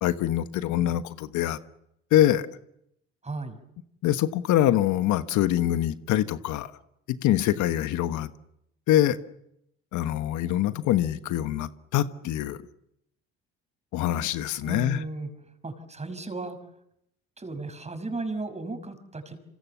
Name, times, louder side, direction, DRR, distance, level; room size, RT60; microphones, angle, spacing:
voice 1, 0.0-1.6 2.1-2.5 4.0-6.7 7.1-8.3 8.9-9.2 9.9-12.6 13.9-15.0, left 12 dB, 65° left, 1.3 m, -24 dB
voice 2, 3.2-3.6 14.6-15.3 15.6-16.6 17.4-19.4, right 3 dB, 20° right, 5.9 m, -35 dB
27.0 x 26.5 x 7.2 m
hypercardioid pair, 75°, 32 cm